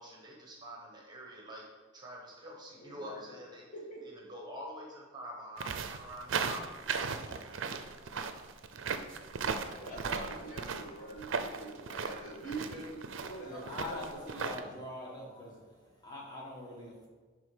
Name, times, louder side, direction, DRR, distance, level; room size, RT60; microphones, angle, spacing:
voice 1, 0.0-1.7 1.9-3.6 4.0-8.0, equal, 20° right, -2 dB, 1.2 m, -47 dB
voice 2, 2.7-3.4 3.7-4.0 9.7-14.4, right 2 dB, 40° left, -4 dB, 2.0 m, -44 dB
sound 1, 5.6-14.6, right 5 dB, 70° right, 0.5 m, -37 dB
voice 3, 13.2-17.1, left 1 dB, 20° left, -3 dB, 1.8 m, -44 dB
10.5 x 3.7 x 5.0 m, 1.3 s
head